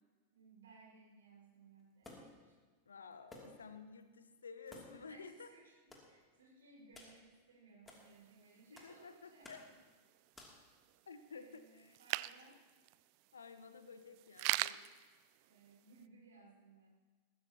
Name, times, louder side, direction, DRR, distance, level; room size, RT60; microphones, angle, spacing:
voice 1, 0.3-2.5 5.1-9.6 11.3-12.6 15.4-16.9, right 3 dB, 65° right, -3 dB, 5.3 m, -62 dB
sound 1, 2.0-2.5 3.3-3.7 4.0-4.1 4.7-5.1 5.9-6.1 6.9-7.2 7.9-8.0 8.8-9.0 9.4-9.7 10.3-10.7, left 2 dB, 15° left, 2.7 m, -56 dB
voice 2, 2.9-5.5 8.7-9.6 11.1-12.0 13.3-14.8, left 5 dB, 70° left, 10 dB, 1.0 m, -53 dB
sound 2, 7.9-16.0, right 20 dB, 45° right, 0.3 m, -44 dB
21.0 x 15.5 x 2.9 m, 1.4 s
figure-of-eight pair, 90°, 0 cm